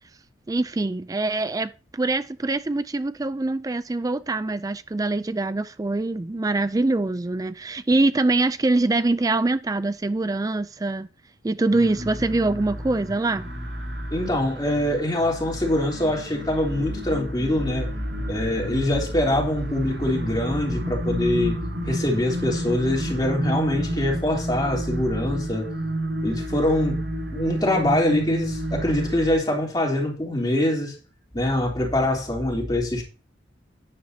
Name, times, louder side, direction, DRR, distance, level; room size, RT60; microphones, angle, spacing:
voice 1, 0.5-11.1 11.4-13.5, right 2 dB, 20° right, 0.4 m, -24 dB
sound 1, 11.7-29.3, equal, 80° right, 6.9 m, -30 dB
voice 2, 14.1-17.9 18.3-25.7 26.2-27.0 27.3-30.9 31.3-33.0, left 1 dB, 20° left, 3.3 m, -24 dB
12.0 x 10.5 x 2.8 m
head